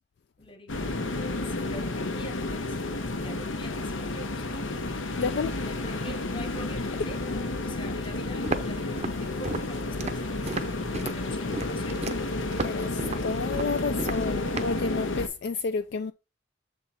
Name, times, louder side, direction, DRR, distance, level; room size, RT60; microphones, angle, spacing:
voice 1, 0.4-1.0 1.4-5.1 5.5-12.0, equal, 25° left, 1.0 m, -45 dB
sound 1, 0.7-15.3, left 2 dB, 75° left, 0.8 m, -31 dB
voice 2, 5.2-5.5 12.6-12.9 13.2-16.1, left 4 dB, 55° left, 0.4 m, -30 dB
Walk footsteps, 8.4-14.8, right 3 dB, 35° right, 0.6 m, -35 dB
7.2 x 3.6 x 4.2 m
head